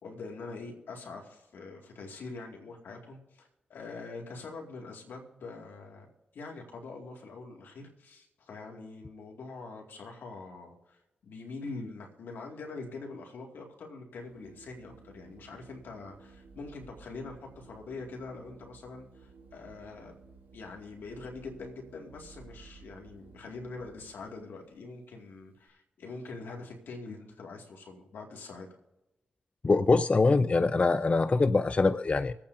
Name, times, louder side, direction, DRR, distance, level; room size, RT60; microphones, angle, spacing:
voice 1, 0.0-6.1 6.3-20.2 20.5-28.7, left 3 dB, 75° left, 1 dB, 2.0 m, -44 dB
Organ, 14.2-24.5, right 4 dB, 75° right, 1.4 m, -55 dB
voice 2, 29.6-32.3, left 3 dB, 35° left, 13 dB, 0.4 m, -24 dB
25.0 x 8.6 x 2.6 m, 0.99 s
supercardioid pair, 45°, 3 cm